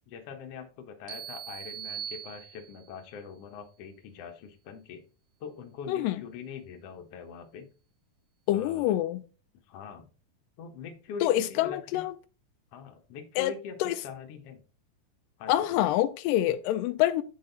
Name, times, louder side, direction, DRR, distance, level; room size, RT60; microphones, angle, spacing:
voice 1, 0.1-5.0 5.4-7.6 8.5-9.0 9.7-10.1 10.6-12.0 12.7-14.6 15.4-16.0, left 6 dB, 65° left, 1.6 m, -43 dB
sound 1, 1.1-3.0, right 9 dB, 75° right, 1.8 m, -40 dB
voice 2, 5.9-6.2 8.5-9.2 11.2-12.1 13.4-13.5 13.8-14.0 15.5-17.2, left 13 dB, 80° left, 2.0 m, -26 dB
8.0 x 6.3 x 3.9 m
omnidirectional pair, 4.2 m